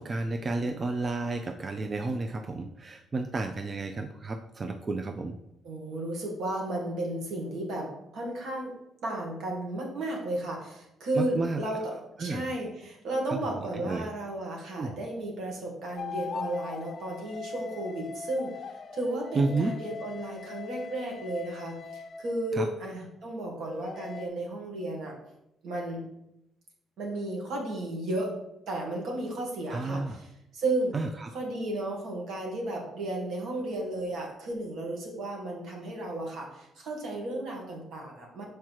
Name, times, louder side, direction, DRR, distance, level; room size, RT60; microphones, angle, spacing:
voice 1, 0.0-5.4 11.2-11.6 12.2-12.4 13.3-14.1 14.8-15.0 19.3-19.7 22.5-22.7 29.7-30.2 30.9-31.3, right 3 dB, 35° right, 7 dB, 0.5 m, -31 dB
voice 2, 5.6-8.7 9.0-11.9 12.2-25.1 25.6-26.1 27.0-28.3 28.7-30.9 31.3-38.4, right 1 dB, 75° right, -1 dB, 2.3 m, -34 dB
sound 1, 16.0-22.7 23.6-24.3, left 6 dB, 45° left, 0.6 m, -41 dB
6.1 x 4.7 x 4.7 m, 0.81 s
cardioid pair, 90°, 0 cm